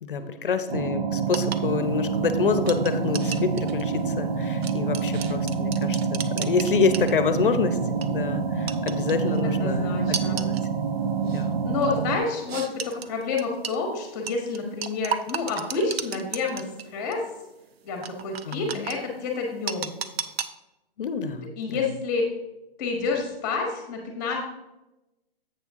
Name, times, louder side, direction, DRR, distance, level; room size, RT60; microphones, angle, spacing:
voice 1, 0.0-7.8 8.1-10.6 11.2-11.6 18.4-18.9 21.0-21.9, left 5 dB, 60° left, 11 dB, 0.8 m, -27 dB
sound 1, 0.7-12.2, right 5 dB, 60° right, 0.9 m, -27 dB
sound 2, 1.3-7.5 7.9-8.1 8.7-9.4 10.1-10.7 11.3-11.5 12.5-13.8 14.3-16.8 17.1-17.2 18.0-19.0 19.7-20.5, right 7 dB, 85° right, 0.7 m, -33 dB
voice 2, 9.4-10.4 11.6-16.6 16.9-17.2 17.8-19.9 21.6-22.2 22.8-24.4, left 4 dB, 20° left, 2 dB, 1.2 m, -29 dB
8.0 x 6.2 x 3.6 m, 0.96 s
hypercardioid pair, 170°, 30 cm